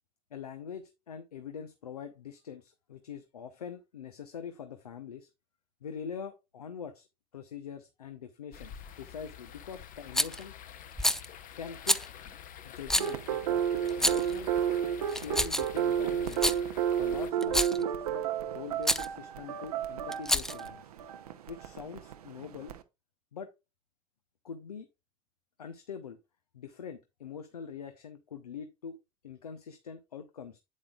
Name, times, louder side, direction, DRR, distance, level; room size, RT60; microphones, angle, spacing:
voice 1, 0.3-5.3 5.8-7.1 7.3-8.7 9.0-10.5 11.6-12.0 12.6-13.6 13.9-14.5 15.1-16.4 17.0-20.9 21.5-22.7 23.3-23.5 24.4-24.9 25.6-26.2 26.5-29.0 29.2-30.6, left 7 dB, 85° left, 8 dB, 0.7 m, -43 dB
sound 1, 8.5-17.3, left 9 dB, 45° left, 0.9 m, -48 dB
Rattle, 10.1-10.4 11.0-11.3 11.9-12.1 12.9-13.1 13.9-14.3 15.1-15.8 16.3-16.6 17.4-17.8 18.8-19.1 20.1-20.7, left 1 dB, ahead, 0.5 m, -28 dB
sound 2, 13.0-22.8, right 9 dB, 80° right, 0.7 m, -31 dB
8.3 x 8.3 x 2.4 m, 0.23 s
hypercardioid pair, 65°, 19 cm